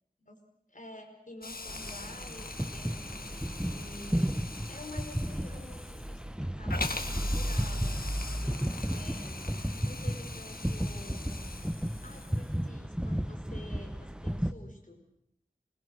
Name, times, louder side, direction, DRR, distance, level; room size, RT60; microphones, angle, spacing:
voice 1, 0.7-4.3 4.7-11.4 12.0-15.0, left 1 dB, 60° left, 3 dB, 5.2 m, -49 dB
Hiss, 1.4-12.7, left 3 dB, 75° left, 1.7 m, -42 dB
sound 1, 1.7-14.5, equal, 5° right, 1.2 m, -33 dB
26.5 x 21.5 x 6.6 m, 0.73 s
wide cardioid pair, 45°, 15 cm